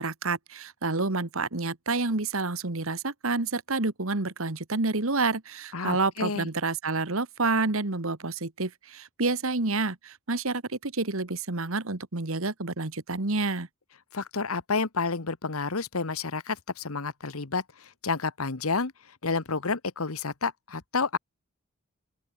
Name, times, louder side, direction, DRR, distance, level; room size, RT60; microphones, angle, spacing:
voice 1, 0.0-13.7, right 3 dB, 75° right, 1.7 m, -29 dB
voice 2, 5.7-6.5 14.1-18.9 19.2-21.2, left 4 dB, 85° left, 1.4 m, -30 dB
open air
head